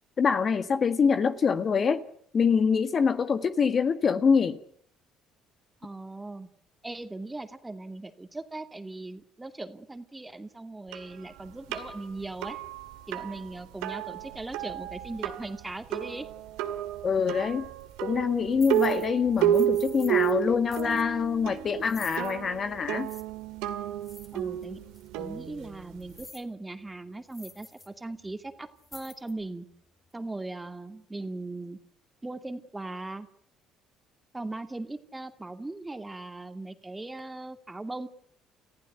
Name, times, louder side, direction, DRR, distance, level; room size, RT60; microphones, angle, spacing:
voice 1, 0.2-2.0 2.3-4.6 17.0-17.7 18.0-23.1, left 6 dB, 45° left, 1.7 m, -25 dB
voice 2, 5.8-6.5 6.8-12.6 13.1-16.3 24.3-24.8 25.2-29.7 30.1-31.8 32.2-33.3 34.3-38.1, right 2 dB, 15° right, 2.5 m, -39 dB
sound 1, 10.9-26.3, right 12 dB, 80° right, 2.0 m, -32 dB
sound 2, 17.8-18.0 18.5-19.1 19.3-20.4 20.7-21.0 21.8-22.4 23.0-23.2 24.0-24.6 24.9-25.1 26.0-26.5 26.9-27.0 27.3-27.9 28.2-28.3 28.8-29.4, left 3 dB, 20° left, 2.9 m, -49 dB
29.5 x 15.0 x 9.2 m
supercardioid pair, 70°, 0 cm